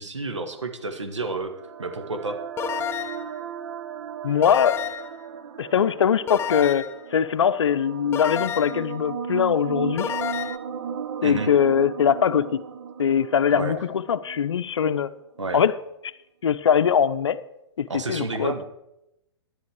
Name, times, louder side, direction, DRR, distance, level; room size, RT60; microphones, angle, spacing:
voice 1, 0.0-1.5 1.8-2.4 11.2-11.5 13.5-13.8 15.4-15.6 17.9-18.6, right 3 dB, 85° right, 7 dB, 1.3 m, -30 dB
sound 1, 0.8-14.9, right 7 dB, 60° right, 0.9 m, -36 dB
sound 2, 2.6-3.3 4.4-5.2 6.3-7.0 8.1-8.9 10.0-10.6, left 9 dB, 15° left, 0.5 m, -30 dB
voice 2, 4.2-4.8 5.6-6.9 7.1-10.1 11.2-12.6 13.0-15.1 15.5-15.7 16.4-17.4 17.8-18.6, left 8 dB, 75° left, 11 dB, 0.6 m, -22 dB
10.5 x 9.7 x 4.8 m, 0.87 s
figure-of-eight pair, 115°, 15 cm